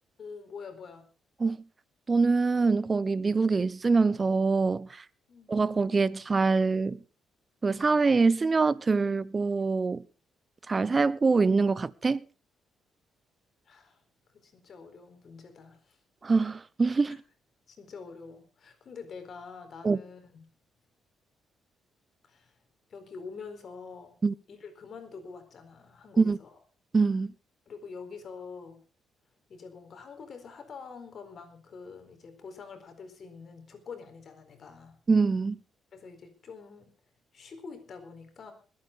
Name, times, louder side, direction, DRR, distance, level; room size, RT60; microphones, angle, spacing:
voice 1, 0.2-1.1 5.3-5.6 13.7-14.0 14.4-16.0 17.7-20.5 22.2-22.5 22.9-24.2 24.5-26.6 27.7-28.8 29.5-35.0 35.9-36.9 37.3-38.5, left 5 dB, 55° left, 4.3 m, -46 dB
voice 2, 2.1-5.0 5.5-7.0 7.6-10.0 10.7-12.2 16.2-17.2 19.8-20.0 24.2-24.3 26.2-26.4 26.9-27.3 35.1-35.6, right 4 dB, 35° right, 0.8 m, -24 dB
21.0 x 9.0 x 5.1 m
supercardioid pair, 65°, 0 cm